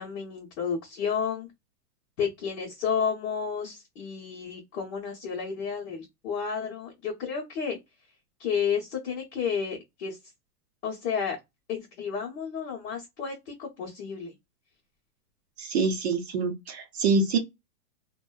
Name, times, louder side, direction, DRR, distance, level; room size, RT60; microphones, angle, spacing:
voice 1, 0.0-1.5 2.2-7.8 8.4-10.2 10.8-11.4 11.7-14.3, left 6 dB, 45° left, 0.8 m, -31 dB
voice 2, 15.6-17.4, right 4 dB, 45° right, 0.5 m, -25 dB
2.6 x 2.2 x 2.2 m
supercardioid pair, 175°, 48 cm